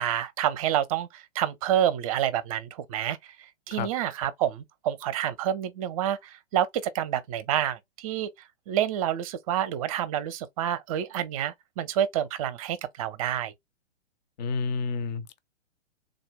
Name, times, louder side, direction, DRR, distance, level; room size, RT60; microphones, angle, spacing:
voice 1, 0.0-3.2 3.7-8.3 8.7-13.5, right 10 dB, 35° right, 0.6 m, -28 dB
voice 2, 14.4-15.4, left 4 dB, 40° left, 0.6 m, -30 dB
3.7 x 2.2 x 3.4 m
figure-of-eight pair, 115°, 33 cm